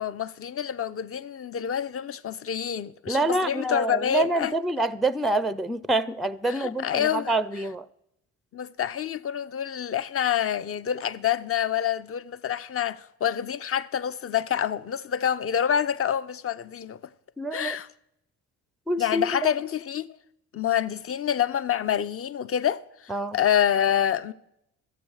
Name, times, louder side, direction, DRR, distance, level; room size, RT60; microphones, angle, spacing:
voice 1, 0.0-4.5 6.5-7.3 8.5-17.0 17.5-17.9 19.0-20.2 20.5-24.3, left 9 dB, 40° left, 0.7 m, -27 dB
voice 2, 3.1-7.9 17.4-17.8 18.9-19.6 23.1-23.4, right 2 dB, ahead, 0.5 m, -26 dB
13.0 x 8.4 x 6.4 m
supercardioid pair, 65°, 36 cm